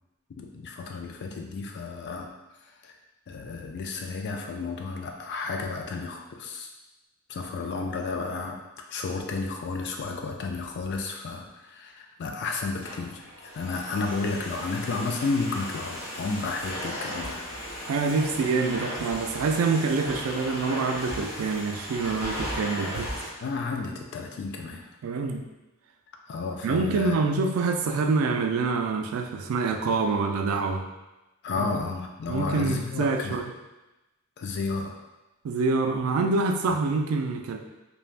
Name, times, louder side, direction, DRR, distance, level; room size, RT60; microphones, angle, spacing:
voice 1, 0.3-2.3 2.8-2.9 3.3-6.7 7.3-17.4 23.4-24.9 26.3-27.2 31.4-33.4 34.4-34.9, left 4 dB, 55° left, 2 dB, 0.3 m, -32 dB
Domestic sounds home sounds, 12.6-23.3, equal, 30° left, 1.0 m, -36 dB
voice 2, 17.9-23.3 25.0-25.4 26.6-30.8 31.6-31.7 32.3-33.5 35.4-37.6, right 4 dB, 75° right, 4 dB, 0.3 m, -26 dB
3.2 x 2.2 x 2.4 m, 1.0 s
head